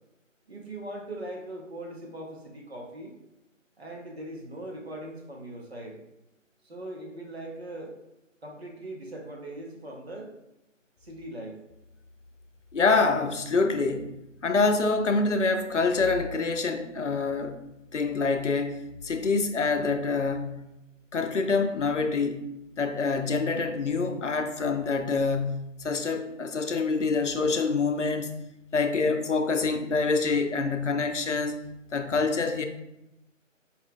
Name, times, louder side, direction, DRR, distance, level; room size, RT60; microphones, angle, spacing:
voice 1, 0.5-3.2 3.8-6.0 6.6-8.0 8.4-10.3 11.0-11.6, right 1 dB, 50° right, 0 dB, 0.8 m, -40 dB
voice 2, 12.7-14.1 14.4-17.6 17.9-20.6 21.1-22.4 22.8-28.4 28.7-31.6 31.9-32.7, left 4 dB, 65° left, 7 dB, 0.5 m, -26 dB
4.4 x 2.3 x 3.5 m, 0.90 s
figure-of-eight pair, 170°, 39 cm